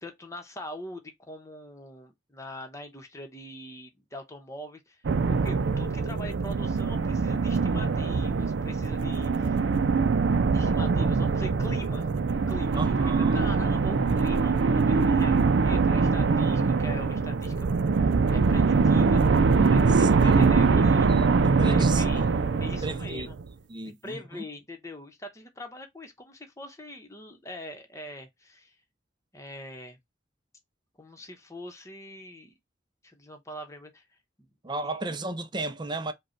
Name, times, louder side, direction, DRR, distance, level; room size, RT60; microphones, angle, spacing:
voice 1, 0.0-5.0 5.3-9.6 10.5-17.7 18.0-19.3 19.7-21.1 21.6-22.3 22.6-23.4 23.8-28.7 29.3-30.0 31.0-32.5 33.0-34.0 34.8-35.0, left 1 dB, 15° left, 1.0 m, -43 dB
sound 1, 5.0-23.5, right 4 dB, 70° right, 0.4 m, -23 dB
voice 2, 12.8-13.5 19.9-20.5 21.1-22.3 22.8-23.3 23.7-24.4 34.6-36.1, right 3 dB, 25° right, 0.5 m, -35 dB
5.1 x 2.3 x 4.4 m
head